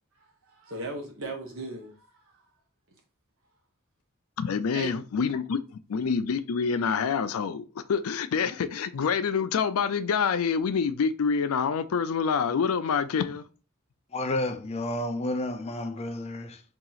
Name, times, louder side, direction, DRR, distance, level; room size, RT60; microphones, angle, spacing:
voice 1, 0.2-2.3 4.7-4.9, right 2 dB, 65° right, 1.1 m, -38 dB
voice 2, 4.4-13.5, left 6 dB, 85° left, 0.4 m, -27 dB
voice 3, 14.1-16.6, left 1 dB, 30° left, 0.4 m, -31 dB
2.9 x 2.8 x 3.9 m
head